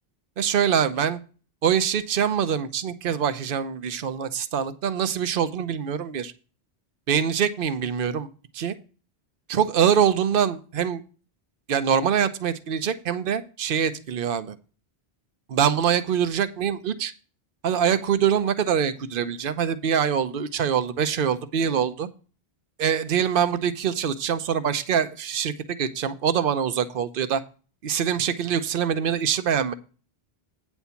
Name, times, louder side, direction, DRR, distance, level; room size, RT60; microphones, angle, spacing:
voice 1, 0.4-1.2 1.6-6.3 7.1-8.3 8.5-8.7 9.5-11.0 11.7-14.6 15.5-17.1 17.6-22.1 22.8-27.4 27.8-29.7, right 8 dB, 60° right, 11 dB, 0.9 m, -24 dB
9.1 x 4.4 x 6.9 m, 0.35 s
omnidirectional pair, 1.1 m